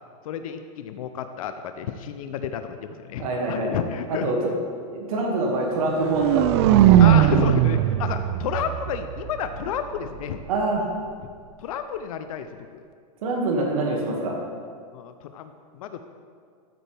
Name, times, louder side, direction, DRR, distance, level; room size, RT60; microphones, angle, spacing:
voice 1, 0.2-4.3 7.0-10.4 11.2-11.3 11.6-12.8 14.9-16.0, left 8 dB, 65° left, 9 dB, 0.6 m, -31 dB
voice 2, 3.2-3.7 4.1-4.5 4.9-7.2 10.5-10.9 13.2-14.4, right 2 dB, 65° right, -1 dB, 2.1 m, -25 dB
sound 1, 5.7-9.8, right 11 dB, 45° right, 0.4 m, -19 dB
13.5 x 8.8 x 3.5 m, 2.1 s
hypercardioid pair, 140°, 20 cm